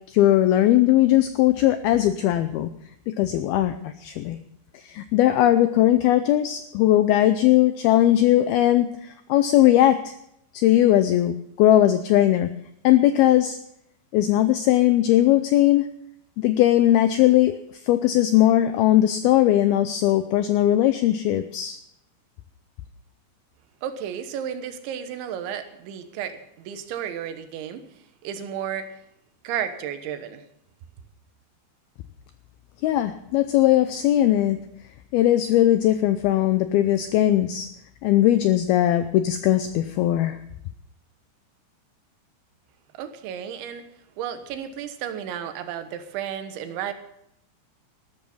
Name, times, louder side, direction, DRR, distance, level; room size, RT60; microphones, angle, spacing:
voice 1, 0.1-2.7 3.1-4.4 4.7-10.1 10.5-11.3 11.6-12.5 12.8-13.6 14.1-15.9 16.4-17.6 17.8-21.8 32.8-34.6 35.1-37.7 38.0-40.4, left 13 dB, 90° left, 11 dB, 2.2 m, -19 dB
voice 2, 23.8-27.8 28.2-28.9 29.5-30.4 42.9-43.9 44.2-46.9, right 9 dB, 90° right, 9 dB, 3.5 m, -33 dB
14.0 x 13.0 x 5.4 m, 0.76 s
omnidirectional pair, 5.2 m